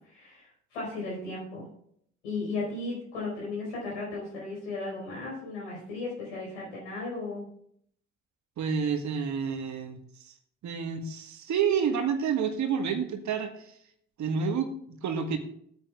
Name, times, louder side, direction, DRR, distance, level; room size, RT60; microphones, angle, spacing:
voice 1, 0.1-1.7 2.2-7.5, left 3 dB, 75° left, -4 dB, 5.0 m, -35 dB
voice 2, 8.6-10.3 10.6-13.7 14.2-15.4, right 6 dB, 50° right, 7 dB, 1.6 m, -29 dB
17.5 x 8.9 x 2.4 m, 0.67 s
figure-of-eight pair, 40°, 36 cm